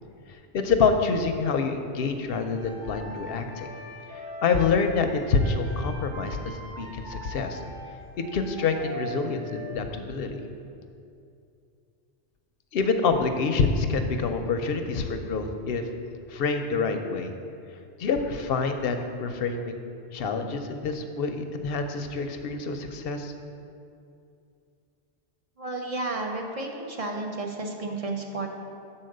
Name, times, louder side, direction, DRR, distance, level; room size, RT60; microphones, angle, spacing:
voice 1, 0.5-3.7 4.1-7.6 8.3-10.4 12.7-15.8 16.3-17.3 18.0-19.8 20.1-23.3, left 4 dB, 65° left, 6 dB, 0.7 m, -27 dB
sound 1, 2.5-9.8, right 1 dB, 85° right, 1.7 m, -42 dB
voice 2, 25.6-28.5, right 2 dB, 40° right, 1 dB, 0.6 m, -32 dB
6.4 x 4.2 x 6.5 m, 2.5 s
omnidirectional pair, 1.2 m